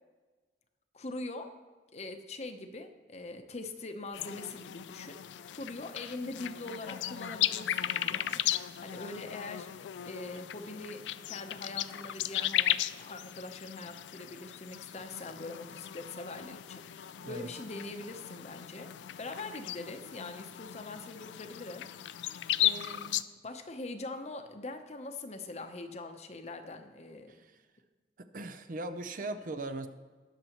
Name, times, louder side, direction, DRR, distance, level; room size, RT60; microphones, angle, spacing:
voice 1, 0.9-1.5 1.9-18.9 19.2-21.9 22.6-27.3, left 2 dB, 40° left, 7 dB, 0.8 m, -43 dB
sound 1, 4.1-23.2, left 12 dB, 90° left, 0.3 m, -36 dB
voice 2, 27.3-27.6 28.2-29.9, right 2 dB, 50° right, 8 dB, 0.6 m, -39 dB
20.0 x 6.8 x 3.0 m, 1.4 s
head